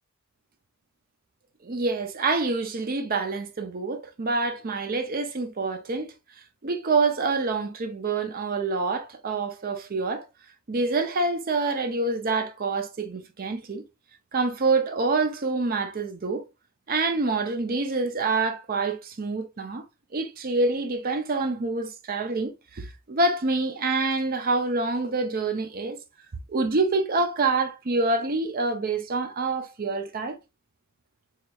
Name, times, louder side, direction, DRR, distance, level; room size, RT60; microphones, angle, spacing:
voice 1, 1.6-6.1 6.6-10.3 10.7-13.8 14.3-16.4 16.9-19.8 20.1-26.0 26.5-30.4, right 3 dB, 40° right, 0.6 m, -26 dB
4.7 x 3.2 x 2.3 m
head